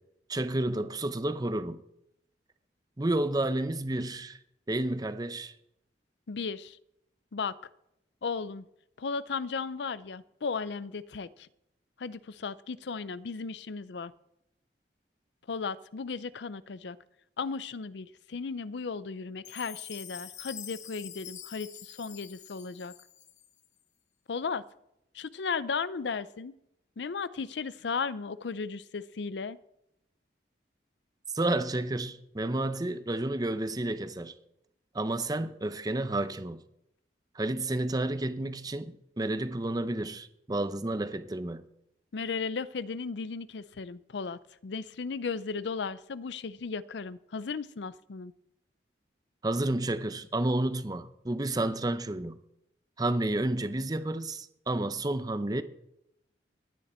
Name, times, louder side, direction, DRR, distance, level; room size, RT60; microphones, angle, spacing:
voice 1, 0.3-1.8 3.0-4.4 4.7-5.5 31.3-34.3 34.9-36.6 37.3-41.6 49.4-52.4 53.0-55.6, right 1 dB, 20° right, 0.7 m, -30 dB
voice 2, 6.3-6.8 7.3-7.6 8.2-8.7 9.0-11.5 12.0-14.1 15.5-17.0 17.4-22.9 24.3-24.6 25.1-26.6 27.0-29.6 42.1-48.3, left 5 dB, 80° left, 0.5 m, -35 dB
Chime, 19.4-23.7, left 10 dB, 40° left, 0.9 m, -46 dB
19.5 x 9.4 x 4.4 m
head